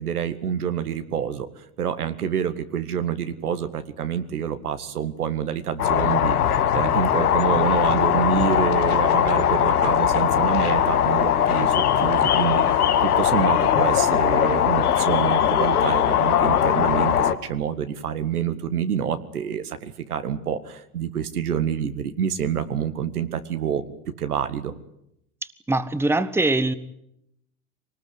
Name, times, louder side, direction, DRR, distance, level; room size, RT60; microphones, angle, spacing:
voice 1, 0.0-23.9 24.2-24.7, right 8 dB, 85° right, 9 dB, 2.0 m, -27 dB
sound 1, 5.8-17.3, left 9 dB, 80° left, 1.9 m, -20 dB
voice 2, 25.7-26.7, right 2 dB, 5° right, 14 dB, 1.3 m, -22 dB
24.0 x 19.5 x 9.5 m, 0.78 s
hypercardioid pair, 85°, 44 cm